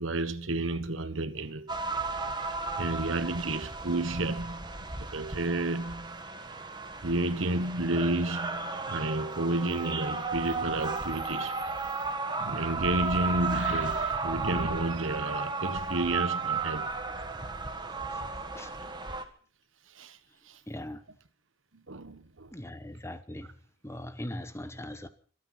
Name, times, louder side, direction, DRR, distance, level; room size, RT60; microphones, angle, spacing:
voice 1, 0.0-1.7 2.8-4.8 5.1-6.2 7.0-11.5 12.4-16.9 18.1-18.3 19.9-20.2 20.5-20.6 21.9-22.5, right 2 dB, 70° right, 1.4 m, -31 dB
sound 1, 1.7-19.3, right 3 dB, 20° right, 1.6 m, -34 dB
voice 2, 20.7-21.0 22.5-25.1, left 1 dB, 15° left, 1.1 m, -40 dB
26.0 x 9.3 x 5.8 m
head